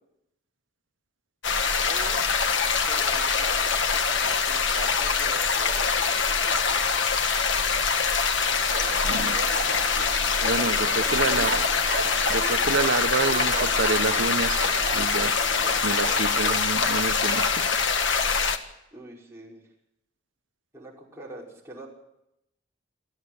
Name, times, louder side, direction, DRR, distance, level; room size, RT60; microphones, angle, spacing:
sound 1, 1.4-18.6, left 5 dB, 70° left, 1.6 m, -24 dB
voice 1, 1.9-2.2 2.9-6.9 10.6-11.6 18.9-19.6 20.7-21.9, right 1 dB, 15° right, -3 dB, 5.3 m, -43 dB
sound 2, 8.7-16.6, right 5 dB, 45° right, 1.2 m, -35 dB
voice 2, 9.0-9.4 10.4-11.5 12.3-15.3 15.8-17.7, right 3 dB, 75° right, 9 dB, 1.2 m, -28 dB
27.0 x 9.9 x 9.8 m, 0.82 s
head